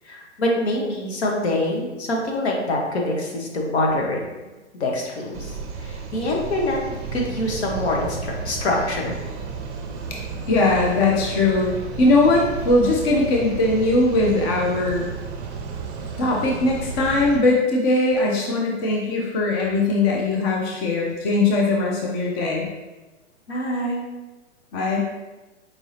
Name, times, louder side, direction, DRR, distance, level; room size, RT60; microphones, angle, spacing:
voice 1, 0.1-4.2 4.8-5.5 5.8-6.8 7.1-9.2 23.5-24.0, left 1 dB, 65° left, -1 dB, 1.2 m, -25 dB
sound 1, 5.3-17.4, right 5 dB, 35° right, 0.6 m, -33 dB
voice 2, 10.5-15.1 16.2-22.7 24.7-25.0, left 2 dB, 25° left, -1 dB, 0.4 m, -20 dB
4.7 x 2.6 x 3.2 m, 1.1 s
hypercardioid pair, 125°, 35 cm